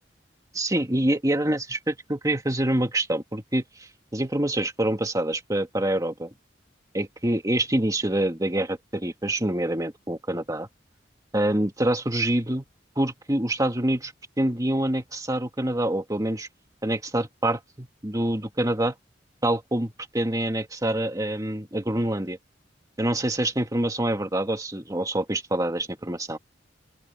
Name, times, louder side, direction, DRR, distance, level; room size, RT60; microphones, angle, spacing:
voice 1, 0.5-6.3 6.9-10.7 11.3-12.7 13.0-14.1 14.4-16.5 16.8-18.9 19.4-22.4 23.0-26.4, right 1 dB, 20° right, 2.1 m, -26 dB
open air
head